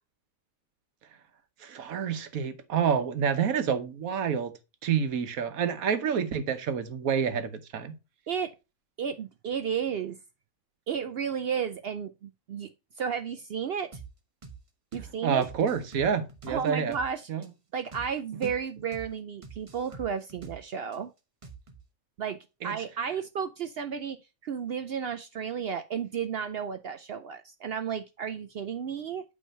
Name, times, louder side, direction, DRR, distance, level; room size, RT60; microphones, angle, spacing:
voice 1, 1.6-4.5 4.8-7.9 15.2-16.9 17.3-17.4 22.6-22.7, right 7 dB, 80° right, 1.4 m, -28 dB
voice 2, 9.0-10.2 10.9-12.7 13.0-14.0 14.9-15.5 16.5-17.3 17.7-21.1 22.2-24.2 24.4-29.2, right 7 dB, 65° right, 0.6 m, -33 dB
sound 1, 13.9-14.1 14.4-14.6 14.9-15.1 15.4-17.1 17.4-17.5 17.9-18.1 18.4-18.6 18.9-19.1 19.4-21.0 21.4-21.8, right 5 dB, 30° right, 0.9 m, -45 dB
8.5 x 3.3 x 5.3 m
omnidirectional pair, 1.4 m